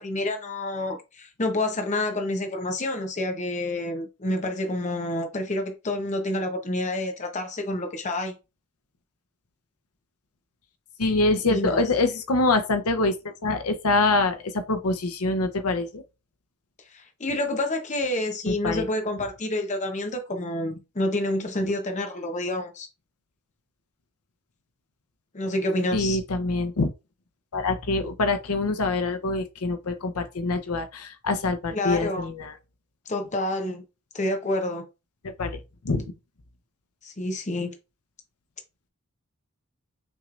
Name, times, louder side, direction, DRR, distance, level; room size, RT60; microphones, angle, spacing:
voice 1, 0.0-8.3 11.5-11.8 16.9-22.9 25.3-26.2 31.7-32.3 33.1-33.8 34.1-34.9 37.0-37.7, left 1 dB, 35° left, 0.9 m, -28 dB
voice 2, 11.0-16.0 18.5-18.9 25.9-26.9 27.5-32.5 35.2-35.6 35.8-36.0, left 3 dB, 85° left, 0.7 m, -25 dB
6.1 x 3.2 x 2.5 m
head